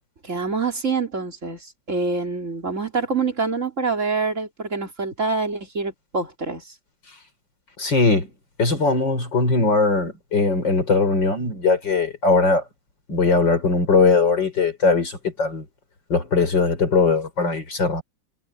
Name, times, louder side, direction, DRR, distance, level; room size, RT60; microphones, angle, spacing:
voice 1, 0.2-6.7, right 4 dB, 40° right, 3.6 m, -26 dB
voice 2, 7.8-8.3 8.6-12.6 13.1-15.7 16.1-18.0, left 4 dB, 75° left, 5.2 m, -20 dB
omnidirectional pair, 2.0 m